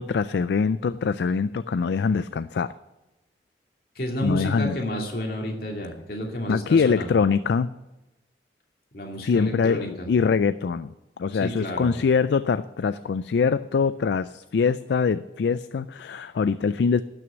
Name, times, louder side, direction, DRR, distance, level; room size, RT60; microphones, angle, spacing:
voice 1, 0.0-2.7 4.2-4.8 6.5-7.7 9.2-10.9 11.2-17.0, left 5 dB, 70° left, 14 dB, 0.3 m, -23 dB
voice 2, 3.9-7.2 8.9-10.3 11.3-11.9, equal, 55° left, 0 dB, 2.6 m, -31 dB
12.0 x 6.3 x 9.1 m, 1.0 s
head